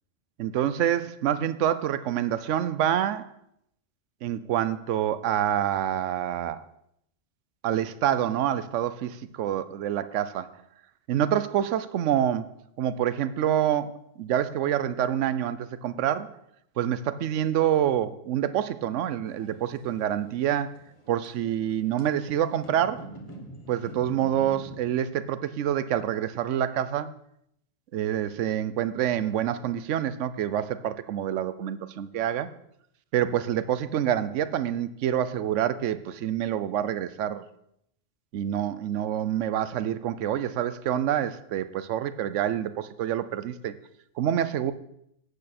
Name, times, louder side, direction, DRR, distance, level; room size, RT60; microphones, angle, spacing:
voice 1, 0.4-3.3 4.2-6.6 7.6-10.5 11.1-12.5 12.8-16.3 16.8-20.7 21.1-23.1 23.7-27.1 27.9-32.5 33.1-37.4 38.3-43.7 44.2-44.7, right 10 dB, 80° right, 14 dB, 1.0 m, -27 dB
sound 1, 19.2-24.9, equal, 25° left, 1.5 m, -45 dB
11.5 x 8.8 x 4.2 m, 0.74 s
omnidirectional pair, 1.2 m